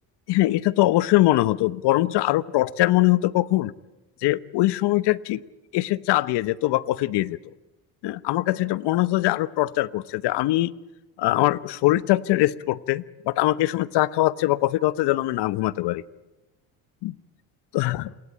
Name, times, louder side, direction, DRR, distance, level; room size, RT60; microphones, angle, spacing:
voice 1, 0.3-3.7 4.2-5.4 5.7-7.4 8.0-10.7 11.2-16.0 17.0-17.1 17.7-18.1, left 17 dB, 65° left, 17 dB, 1.0 m, -22 dB
27.5 x 23.0 x 9.1 m, 1.1 s
hypercardioid pair, 65°, 43 cm